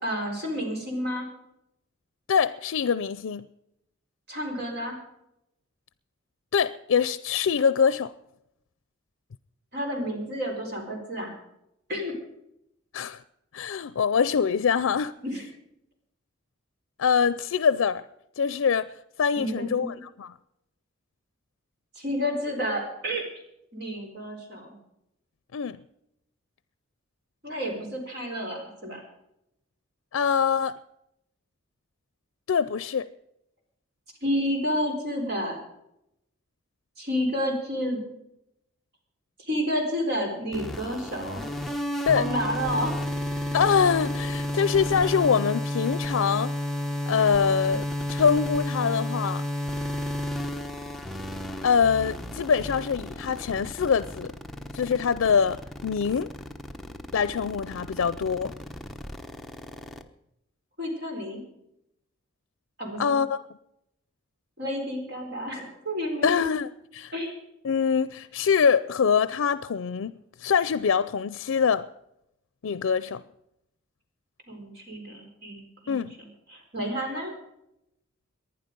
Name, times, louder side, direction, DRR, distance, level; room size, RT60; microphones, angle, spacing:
voice 1, 0.0-1.3 4.3-5.0 9.7-11.3 11.9-12.2 15.2-15.4 19.4-20.0 22.0-23.2 23.7-24.8 27.4-29.0 34.2-35.6 37.0-38.0 39.4-41.4 42.1-43.0 60.8-61.4 62.8-63.2 64.6-66.5 67.1-67.3 74.5-76.1 76.5-77.4, equal, 50° right, 4.2 m, -30 dB
voice 2, 2.3-3.5 6.5-8.1 12.9-13.2 13.5-15.1 17.0-18.0 18.4-18.9 19.2-20.3 25.5-25.8 30.1-30.7 32.5-33.1 42.0-42.3 43.5-46.5 47.1-49.5 51.6-54.3 54.7-56.3 57.1-58.5 63.0-63.4 66.2-67.1 67.6-71.9 72.6-73.2 75.9-76.2, left 6 dB, 90° left, 0.4 m, -24 dB
sound 1, 40.5-60.0, left 1 dB, ahead, 0.8 m, -32 dB
19.5 x 11.0 x 5.3 m
head